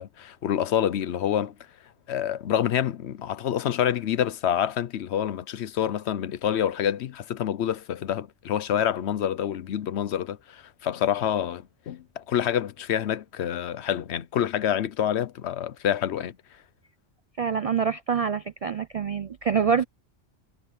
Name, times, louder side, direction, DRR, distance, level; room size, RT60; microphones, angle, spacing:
voice 1, 0.0-1.5 2.1-16.4, left 10 dB, 70° left, 0.9 m, -27 dB
voice 2, 17.4-19.8, right 6 dB, 60° right, 0.4 m, -25 dB
omnidirectional pair, 1.2 m